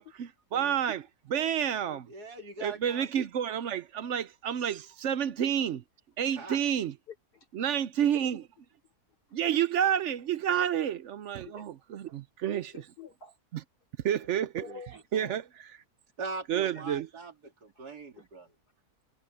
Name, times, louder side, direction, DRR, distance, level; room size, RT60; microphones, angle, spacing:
voice 1, 0.0-2.1 2.6-5.8 6.2-6.9 7.5-8.4 9.3-12.7 14.0-14.7 15.1-15.4 16.5-17.1, right 9 dB, 60° right, 0.8 m, -29 dB
voice 2, 2.1-3.1 6.4-6.7 14.1-14.3 14.7-14.8 16.2-18.5, right 3 dB, 80° right, 3.0 m, -41 dB
voice 3, 7.1-7.5 11.4-11.7 12.7-13.3 14.6-15.4 17.8-17.9 18.2-18.3, left 5 dB, 85° left, 4.3 m, -48 dB
omnidirectional pair, 1.7 m